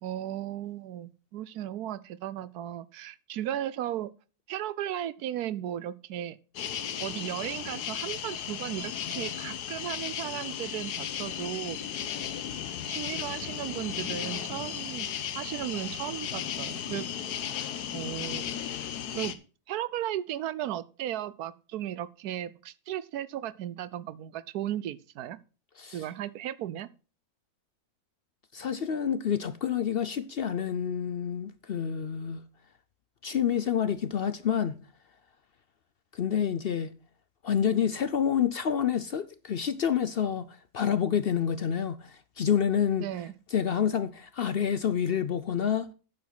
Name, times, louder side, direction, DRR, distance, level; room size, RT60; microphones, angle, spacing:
voice 1, 0.0-4.1 4.5-6.4 7.0-11.8 12.9-15.1 15.3-17.1 17.9-18.5 19.1-19.3 19.7-25.4 25.9-26.9 43.0-43.3, right 12 dB, 80° right, 1.2 m, -35 dB
sound 1, 6.5-19.3, left 9 dB, 85° left, 1.5 m, -35 dB
voice 2, 28.5-32.4 33.2-34.8 36.1-36.9 37.4-40.5 40.7-43.1 43.5-45.9, left 8 dB, 60° left, 0.6 m, -28 dB
9.6 x 7.2 x 6.0 m
omnidirectional pair, 1.6 m